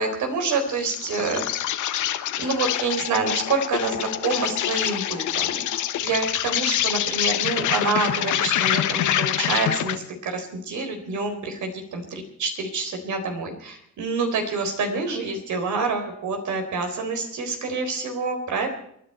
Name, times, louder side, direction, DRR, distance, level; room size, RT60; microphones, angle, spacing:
voice 1, 0.0-1.8 2.4-5.7 6.0-18.7, right 3 dB, 75° right, 4 dB, 4.1 m, -27 dB
Insect, 0.7-10.1, left 12 dB, 80° left, 1.2 m, -26 dB
29.0 x 10.5 x 4.4 m, 0.73 s
cardioid pair, 90°, 30 cm